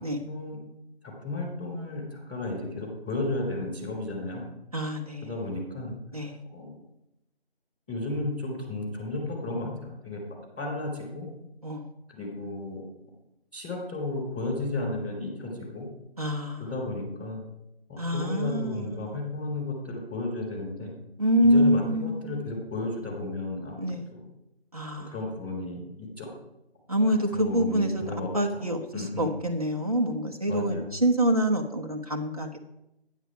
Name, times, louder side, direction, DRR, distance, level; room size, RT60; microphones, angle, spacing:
voice 1, 0.2-0.6 1.0-4.4 5.2-5.9 6.5-6.7 7.9-10.2 10.6-11.3 12.1-12.8 13.5-15.9 16.6-17.4 17.9-20.9 21.4-24.2 25.1-26.3 27.3-28.3 28.9-29.4 30.5-30.9, left 2 dB, 10° left, -14 dB, 3.3 m, -33 dB
voice 2, 4.7-5.3 6.1-6.4 11.6-11.9 16.2-16.7 18.0-19.2 21.2-22.5 23.8-24.1 24.7-25.1 26.9-28.0 28.3-32.6, equal, 35° right, 2 dB, 1.3 m, -26 dB
11.0 x 9.5 x 4.9 m, 0.86 s
figure-of-eight pair, 175°, 31 cm